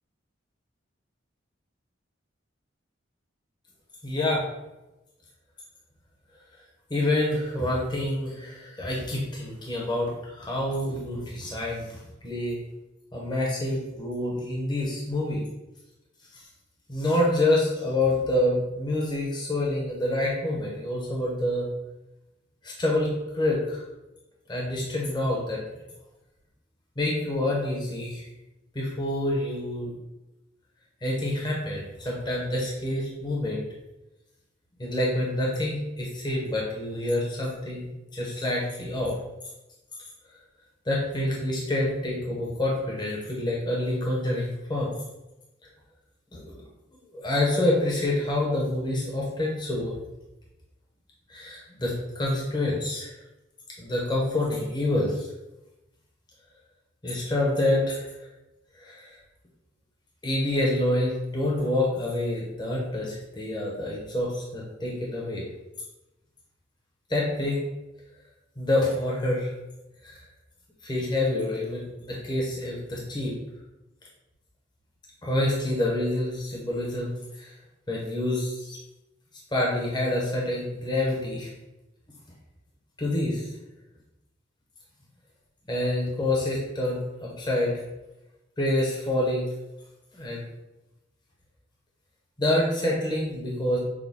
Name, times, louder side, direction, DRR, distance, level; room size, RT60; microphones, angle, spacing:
voice 1, 4.0-4.4 6.9-11.9 12.2-12.6 13.1-15.4 16.9-21.7 22.6-23.8 24.5-25.6 27.0-28.3 28.7-29.9 31.0-33.6 34.8-39.1 40.9-44.9 46.3-46.4 47.1-49.9 51.3-53.1 53.8-55.3 57.0-58.1 58.8-59.1 60.2-65.4 67.1-67.6 68.6-69.5 70.0-70.2 70.8-73.3 75.2-77.1 77.4-77.5 77.9-78.8 79.5-81.5 83.0-83.4 85.7-87.7 88.6-89.4 90.1-90.4 92.4-93.8, left 1 dB, 20° left, -3 dB, 0.8 m, -27 dB
6.0 x 2.2 x 3.6 m, 0.98 s
head